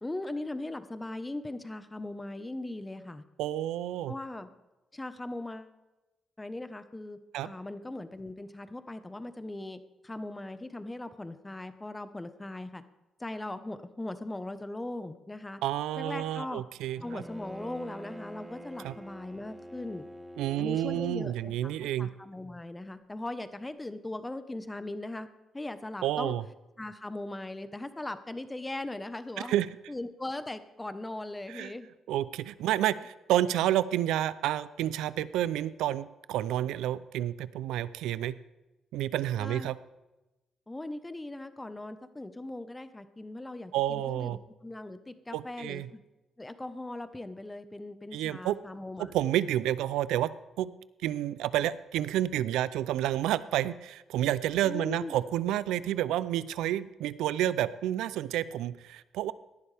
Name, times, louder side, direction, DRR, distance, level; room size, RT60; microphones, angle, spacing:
voice 1, 0.0-3.2 4.1-4.5 4.9-5.7 6.4-7.2 7.4-12.8 13.2-15.6 16.0-16.6 17.0-20.1 20.6-25.3 25.5-26.4 26.8-29.5 29.9-31.9 39.4-39.7 40.7-46.0 46.4-49.1 54.6-55.2, left 2 dB, 15° left, 11 dB, 1.1 m, -39 dB
voice 2, 3.4-4.1 7.3-7.5 15.6-17.2 18.8-19.0 20.4-22.1 26.0-26.4 29.4-29.7 31.5-31.7 32.1-38.4 38.9-39.8 43.7-44.4 45.3-45.9 48.1-48.6 49.0-50.3 50.6-50.7 51.0-59.3, right 12 dB, 90° right, 17 dB, 0.4 m, -30 dB
Bowed string instrument, 17.0-21.8, equal, 10° right, 1.4 m, -46 dB
17.5 x 11.0 x 3.4 m, 1.0 s
supercardioid pair, 65°, 0 cm